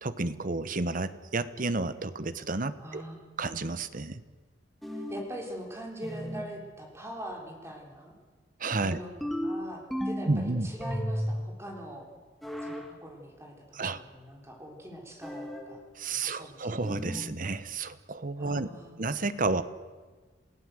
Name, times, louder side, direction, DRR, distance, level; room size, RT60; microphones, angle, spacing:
voice 1, 0.0-3.0 3.4-4.2 8.6-9.0 10.3-10.7 13.7-14.0 16.0-18.7 19.0-19.6, right 3 dB, 50° right, 13 dB, 1.0 m, -31 dB
voice 2, 2.8-3.2 4.9-8.1 8.8-9.1 9.4-12.1 12.6-15.8 16.1-16.7 18.4-19.0, right 1 dB, 15° right, 1 dB, 4.0 m, -43 dB
sound 1, 4.8-5.4 6.0-6.5 9.2-10.4 10.8-11.5 12.4-12.9 15.2-15.7 16.8-17.3, equal, ahead, 2.2 m, -34 dB
28.5 x 17.0 x 7.7 m, 1.4 s
head